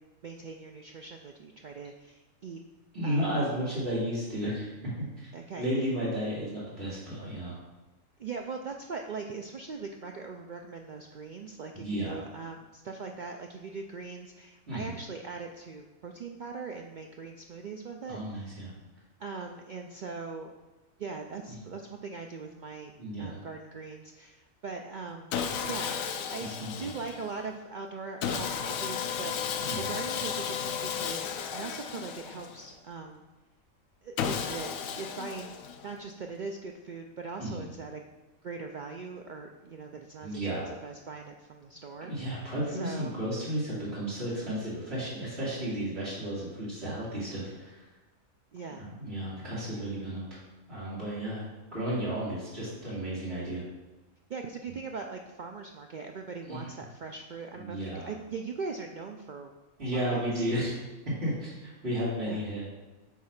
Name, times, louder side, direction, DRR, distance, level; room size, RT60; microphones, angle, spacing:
voice 1, 0.2-2.6 3.0-3.3 5.3-5.9 8.2-18.6 19.2-20.5 21.0-22.9 23.2-25.4 25.7-26.0 26.3-26.5 26.8-33.3 34.0-34.7 35.0-35.6 35.8-38.0 38.4-42.3 42.7-43.2 48.5-48.9 54.3-59.5 59.9-60.4 62.3-62.5, right 4 dB, 75° right, 3 dB, 0.4 m, -41 dB
voice 2, 2.9-4.7 5.0-5.3 5.6-7.6 11.7-12.2 14.7-14.9 18.1-18.7 21.5-21.6 23.0-23.4 26.4-26.7 29.6-29.9 37.4-37.6 40.2-40.7 42.0-47.8 48.8-50.4 50.7-51.4 51.7-53.6 56.5-56.7 57.6-58.1 59.8-60.8 61.2-62.6, right 1 dB, 50° right, -10 dB, 2.6 m, -33 dB
Sawing, 25.3-27.4 28.2-32.7 34.2-36.0, left 7 dB, 85° left, 1.1 m, -34 dB
8.3 x 3.2 x 5.8 m, 1.1 s
omnidirectional pair, 1.4 m